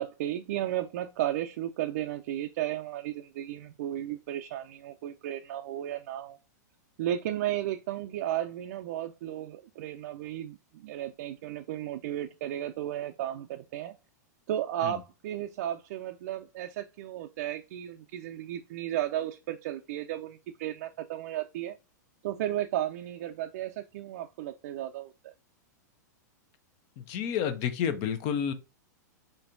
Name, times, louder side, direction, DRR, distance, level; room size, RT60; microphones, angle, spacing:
voice 1, 0.0-6.4 7.0-13.9 14.5-21.8 22.2-25.3, right 12 dB, 60° right, 0.4 m, -34 dB
voice 2, 27.0-28.5, left 8 dB, 50° left, 0.8 m, -30 dB
4.2 x 3.9 x 2.6 m
hypercardioid pair, 115°, 10 cm